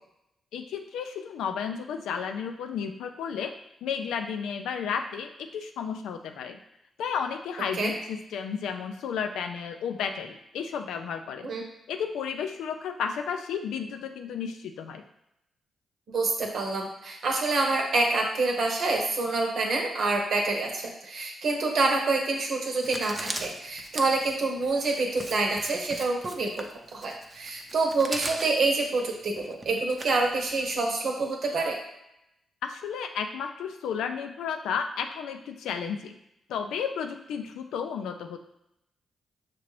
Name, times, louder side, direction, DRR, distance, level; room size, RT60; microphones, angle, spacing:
voice 1, 0.5-3.5 3.8-6.6 7.0-11.5 11.9-15.0 32.6-36.2 36.5-38.4, left 7 dB, 80° left, 6 dB, 0.4 m, -33 dB
voice 2, 16.1-26.6 26.9-31.8, right 3 dB, 65° right, 1 dB, 0.9 m, -27 dB
Writing, 22.8-30.8, right 1 dB, 30° right, 0.6 m, -40 dB
5.9 x 2.4 x 3.2 m, 0.82 s
hypercardioid pair, 45°, 0 cm